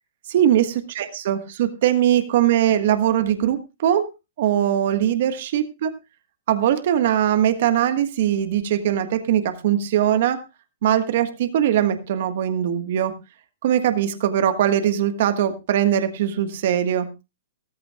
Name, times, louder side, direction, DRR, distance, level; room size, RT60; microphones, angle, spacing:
voice 1, 0.3-4.1 4.4-5.9 6.5-10.4 10.8-13.1 13.6-17.1, right 10 dB, 60° right, 8 dB, 1.5 m, -21 dB
16.0 x 14.5 x 2.4 m, 0.26 s
hypercardioid pair, 135°, 0 cm